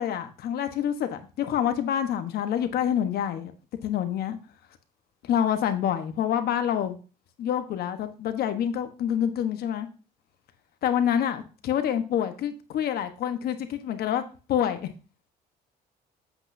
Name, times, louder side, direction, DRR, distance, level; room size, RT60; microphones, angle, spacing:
voice 1, 0.0-3.5 3.8-4.4 5.3-7.0 7.4-9.9 10.8-14.2 14.5-14.9, left 9 dB, 65° left, 9 dB, 1.2 m, -27 dB
8.1 x 8.1 x 2.7 m, 0.34 s
cardioid pair, 110°, 17 cm